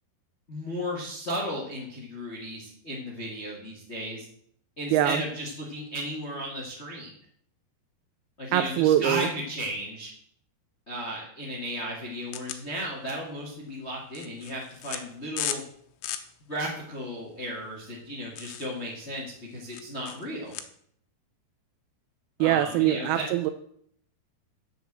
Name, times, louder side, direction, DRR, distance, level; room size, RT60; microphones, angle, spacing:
voice 1, 0.5-4.3 4.8-7.1 8.4-10.1 10.9-15.6 16.5-20.5 22.4-23.3, equal, 40° left, -2 dB, 0.9 m, -35 dB
voice 2, 4.9-5.2 8.5-9.3 22.4-23.5, right 12 dB, 80° right, 10 dB, 2.3 m, -23 dB
sound 1, 12.3-20.6, left 11 dB, 80° left, 2.9 m, -38 dB
7.9 x 7.1 x 7.5 m, 0.65 s
omnidirectional pair, 4.8 m